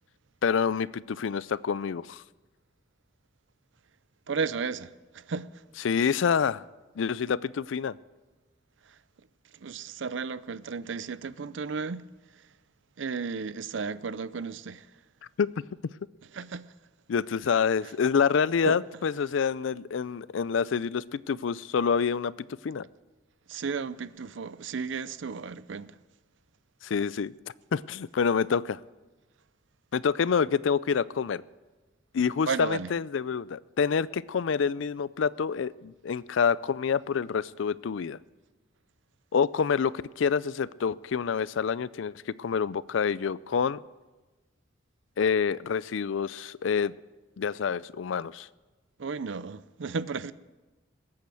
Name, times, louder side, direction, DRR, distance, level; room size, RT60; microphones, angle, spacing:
voice 1, 0.4-2.2 5.8-6.6 7.0-8.0 15.4-15.5 17.1-22.3 22.6-22.9 26.8-27.3 27.7-28.8 29.9-31.4 32.1-38.2 39.3-43.8 45.2-46.9 47.4-48.5, left 6 dB, 70° left, 0.4 m, -27 dB
voice 2, 4.3-5.5 9.6-12.1 13.0-14.9 16.3-16.7 18.7-18.8 23.5-25.9 32.2-32.9 49.0-50.3, right 5 dB, 70° right, 0.5 m, -34 dB
20.0 x 8.7 x 7.7 m
head